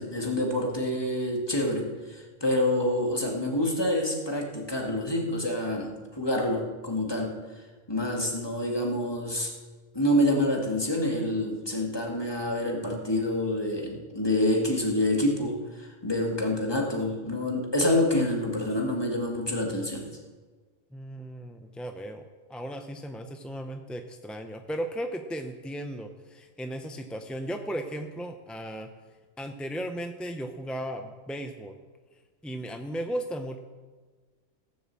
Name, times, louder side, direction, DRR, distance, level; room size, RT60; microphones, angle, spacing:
voice 1, 0.0-7.4 7.9-9.5 9.9-20.1, left 1 dB, 20° left, 0 dB, 2.0 m, -27 dB
voice 2, 20.9-28.9 29.4-31.8 32.4-33.6, right 1 dB, ahead, 5 dB, 0.4 m, -36 dB
16.5 x 7.1 x 7.6 m, 1.4 s
omnidirectional pair, 1.3 m